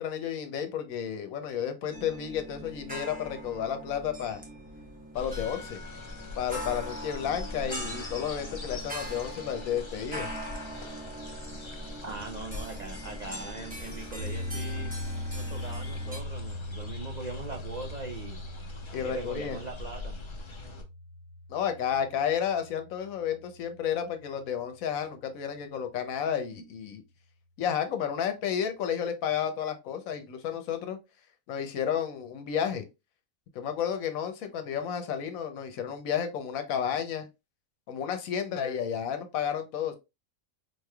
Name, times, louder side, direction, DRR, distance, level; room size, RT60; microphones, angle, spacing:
voice 1, 0.0-4.4 5.1-5.8 6.4-10.3 18.9-19.6 21.5-27.0 27.6-31.0 31.5-32.9 33.5-37.3 37.9-40.0, left 8 dB, 80° left, 1.1 m, -32 dB
sound 1, 1.9-16.2, equal, 5° right, 0.8 m, -42 dB
sound 2, 5.1-20.8, left 2 dB, 50° left, 0.3 m, -42 dB
voice 2, 12.0-14.9 15.3-18.4 19.0-20.2, right 3 dB, 65° right, 0.4 m, -41 dB
sound 3, 14.2-24.4, left 1 dB, 40° right, 1.1 m, -40 dB
4.5 x 3.2 x 2.2 m
omnidirectional pair, 1.4 m